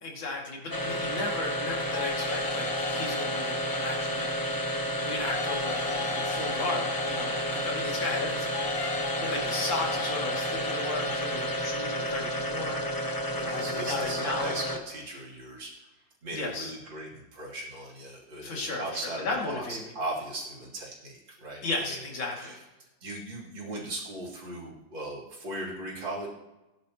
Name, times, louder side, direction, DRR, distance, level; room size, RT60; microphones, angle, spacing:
voice 1, 0.0-4.3 5.0-8.5 9.2-12.9 13.4-14.5 16.3-16.7 18.4-19.9 21.6-22.6, left 2 dB, 85° left, -2 dB, 3.1 m, -35 dB
sound 1, 0.7-15.0, equal, 25° left, 0.5 m, -31 dB
sound 2, 1.7-4.6 5.2-8.0 8.5-11.4, left 5 dB, 55° left, 1.5 m, -39 dB
voice 2, 13.4-15.7 16.2-21.6 22.4-22.5 23.0-26.3, right 1 dB, 75° right, -4 dB, 3.7 m, -38 dB
18.5 x 10.5 x 2.9 m, 1.0 s
omnidirectional pair, 2.1 m